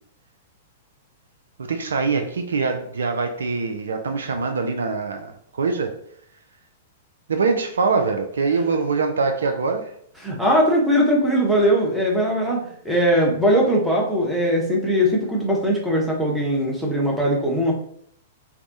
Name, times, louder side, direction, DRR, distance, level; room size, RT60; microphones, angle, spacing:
voice 1, 1.7-5.9 7.3-9.9, right 4 dB, 70° right, 6 dB, 0.3 m, -23 dB
voice 2, 10.2-17.7, equal, ahead, -3 dB, 0.8 m, -20 dB
3.4 x 2.0 x 2.6 m, 0.66 s
figure-of-eight pair, 105°, 0 cm